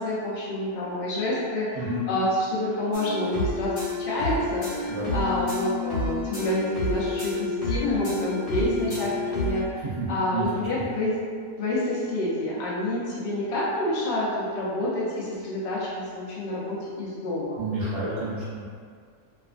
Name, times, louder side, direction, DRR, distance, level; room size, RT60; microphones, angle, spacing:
voice 1, 0.0-11.2 11.6-17.6, left 1 dB, 80° left, -8 dB, 0.4 m, -28 dB
voice 2, 1.7-2.0 4.9-5.1 8.7-9.0 9.8-10.4 17.6-18.6, right 2 dB, 60° right, -9 dB, 0.9 m, -30 dB
sound 1, 2.9-9.6, left 2 dB, 60° left, 1.0 m, -30 dB
2.5 x 2.4 x 2.4 m, 2.1 s
omnidirectional pair, 1.6 m